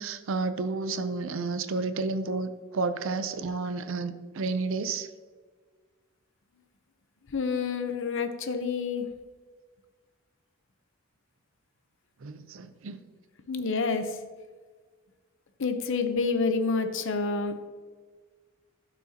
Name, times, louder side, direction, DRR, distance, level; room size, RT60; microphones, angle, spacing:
voice 1, 0.0-5.1 12.2-13.0, right 3 dB, 70° right, 11 dB, 0.5 m, -31 dB
voice 2, 7.3-9.1 13.5-14.2 15.6-17.5, left 4 dB, 65° left, 8 dB, 0.7 m, -28 dB
11.5 x 6.1 x 2.8 m, 1.5 s
head